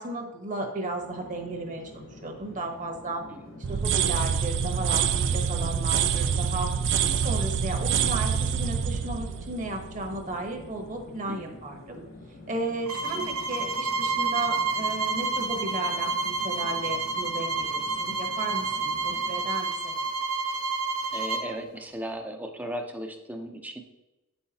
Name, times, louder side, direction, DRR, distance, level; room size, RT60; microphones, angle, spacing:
voice 1, 0.0-3.2 3.7-6.7 7.0-12.0 12.5-20.1, right 2 dB, 35° right, 3 dB, 1.1 m, -34 dB
Chatter / Fixed-wing aircraft airplane, 0.7-19.7, left 1 dB, 45° left, 1.1 m, -47 dB
sound 1, 3.6-10.5, right 7 dB, 55° right, 0.4 m, -26 dB
voice 2, 11.3-11.6 13.1-13.2 21.1-23.8, right 1 dB, 10° right, 4 dB, 0.6 m, -37 dB
sound 2, 12.9-21.5, right 3 dB, 90° right, 0.8 m, -29 dB
9.1 x 5.6 x 2.8 m, 1.0 s
head